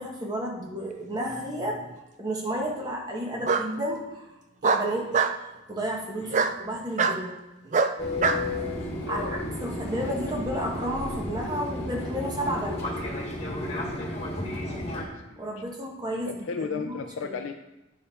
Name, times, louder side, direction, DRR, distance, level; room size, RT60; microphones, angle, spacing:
voice 1, 0.0-1.8 2.2-4.3 4.6-5.1 5.7-7.3 9.1-12.8 15.4-16.9 17.2-17.3, equal, 20° right, -1 dB, 1.3 m, -32 dB
Bark, 1.3-1.9 3.4-3.7 4.6-5.4 6.3-6.6 7.0-7.2 7.7-8.4, right 5 dB, 35° right, 0.4 m, -24 dB
Fixed-wing aircraft airplane, 8.0-15.0, left 1 dB, 30° left, 1.5 m, -32 dB
voice 2, 9.0-9.5 14.7-15.4 16.3-17.6, left 5 dB, 80° left, 5 dB, 0.4 m, -35 dB
8.8 x 5.4 x 4.2 m, 1.0 s
head